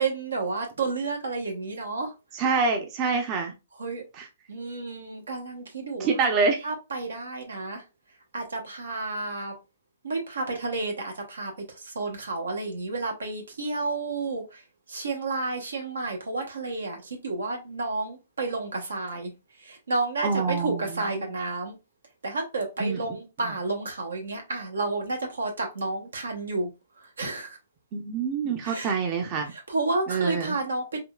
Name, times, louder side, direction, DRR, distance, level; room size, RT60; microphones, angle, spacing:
voice 1, 0.0-2.1 3.8-4.0 4.5-6.1 6.6-7.8 8.3-9.5 10.0-11.5 11.8-14.6 14.9-19.3 19.6-21.7 22.2-26.7 27.2-27.6 28.6-28.9 29.5-31.0, right 3 dB, 80° right, 0.9 m, -31 dB
voice 2, 2.3-3.5 4.2-4.3 6.0-6.7 20.2-21.3 22.8-23.2 27.9-29.5 30.1-30.6, right 4 dB, 35° right, 0.6 m, -26 dB
3.6 x 2.3 x 2.3 m
hypercardioid pair, 130°, 0 cm